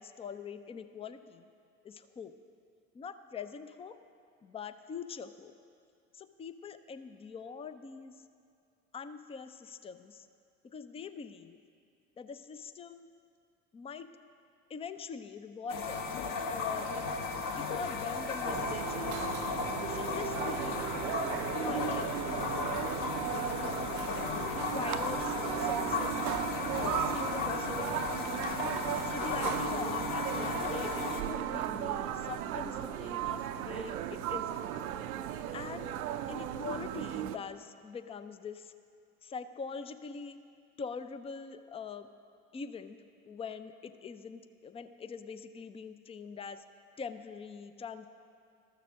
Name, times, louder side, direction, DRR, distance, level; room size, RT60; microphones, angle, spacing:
voice 1, 0.0-1.5 1.8-2.3 2.9-4.0 4.4-5.5 6.1-8.1 8.9-10.3 10.6-11.6 12.2-13.1 13.7-14.1 14.7-16.0 16.5-17.0 17.4-19.1 19.9-22.6 23.4-23.8 24.1-26.2 26.7-28.3 29.0-34.6 35.5-35.9 36.3-38.7 39.2-40.4 40.8-42.1 42.5-43.0 43.3-46.6 47.0-48.1, left 5 dB, 15° left, 11 dB, 0.4 m, -43 dB
sound 1, 15.7-31.2, left 4 dB, 50° left, 1.2 m, -35 dB
sound 2, 18.4-37.4, right 11 dB, 75° right, 0.6 m, -36 dB
13.0 x 6.7 x 6.2 m, 2.4 s
hypercardioid pair, 70°, 43 cm